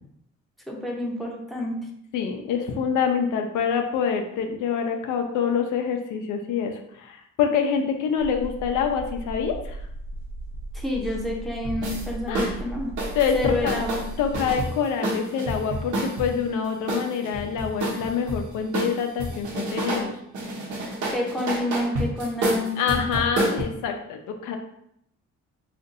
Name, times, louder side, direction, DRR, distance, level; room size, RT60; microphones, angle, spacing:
voice 1, 0.7-1.8 10.7-12.9 13.3-14.0 21.1-23.2, left 1 dB, ahead, -1 dB, 0.7 m, -29 dB
voice 2, 2.1-9.8 12.3-12.5 13.1-13.8 14.2-20.1 22.8-24.6, left 7 dB, 85° left, 4 dB, 0.5 m, -26 dB
sound 1, 8.2-14.5, right 2 dB, 45° right, 0.7 m, -36 dB
sound 2, 11.6-12.1 12.4-12.6 13.0-16.4 16.9-18.4 18.7-20.1 20.3-23.6, right 1 dB, 75° right, 0.9 m, -28 dB
2.6 x 2.5 x 3.9 m, 0.75 s
cardioid pair, 90°, 30 cm